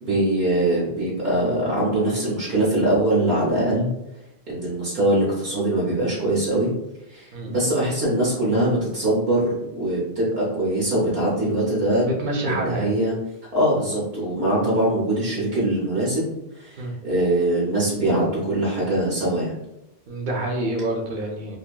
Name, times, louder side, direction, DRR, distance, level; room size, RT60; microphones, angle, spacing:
voice 1, 0.0-3.9 4.5-6.7 7.1-12.2 12.5-13.1 13.5-16.8 17.0-19.5, right 1 dB, 80° right, -6 dB, 1.0 m, -22 dB
voice 2, 12.0-12.9 16.8-16.9 20.1-21.6, right 1 dB, 60° right, 0 dB, 0.6 m, -27 dB
2.7 x 2.4 x 2.2 m, 0.91 s
omnidirectional pair, 1.0 m